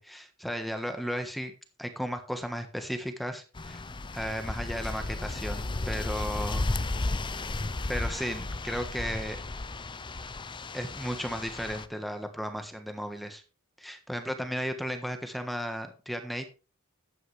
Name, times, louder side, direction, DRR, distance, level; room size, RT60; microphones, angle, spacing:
voice 1, 0.0-3.8 4.1-6.7 7.9-9.4 10.7-13.4 13.8-16.5, equal, ahead, 7 dB, 1.3 m, -35 dB
sound 1, 3.6-11.9, left 2 dB, 20° left, 0.6 m, -34 dB
13.0 x 9.1 x 3.4 m, 0.33 s
head